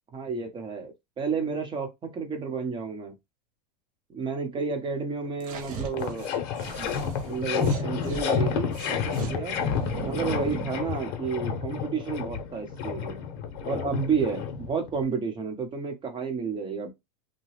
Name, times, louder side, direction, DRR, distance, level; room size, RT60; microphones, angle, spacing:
voice 1, 0.1-3.1 4.1-6.3 6.8-6.9 7.2-9.0 9.3-9.6 10.0-13.2 13.6-16.9, right 5 dB, 25° right, 0.9 m, -31 dB
sound 1, 5.3-5.4 5.6-15.0, left 7 dB, 55° left, 0.8 m, -30 dB
sound 2, 5.4-8.2 8.7-10.8, right 7 dB, 40° right, 0.7 m, -37 dB
2.8 x 2.2 x 3.2 m
supercardioid pair, 125°, 20 cm